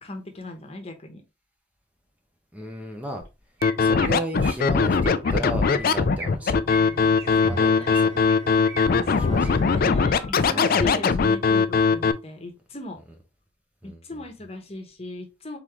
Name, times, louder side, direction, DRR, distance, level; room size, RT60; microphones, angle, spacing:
voice 1, 0.0-1.2 6.4-8.3 9.1-13.0 13.8-15.6, left 2 dB, 35° left, 1.0 m, -36 dB
voice 2, 2.5-3.2 3.8-6.6 7.0-7.7 8.9-9.6 10.5-11.1 13.8-14.2, right 1 dB, 10° right, 0.7 m, -34 dB
Chirp tweet, 3.2-3.3 3.6-4.1 4.4-4.6 5.0-5.3 5.6-6.3 6.7-8.0 8.3-8.8 9.3-9.5 10.0-10.3, right 1 dB, 80° right, 2.4 m, -38 dB
Scratching (performance technique), 3.6-12.1, left 5 dB, 55° left, 0.4 m, -20 dB
sound 1, 6.7-10.5, right 2 dB, 45° right, 2.0 m, -46 dB
3.9 x 3.7 x 3.1 m
head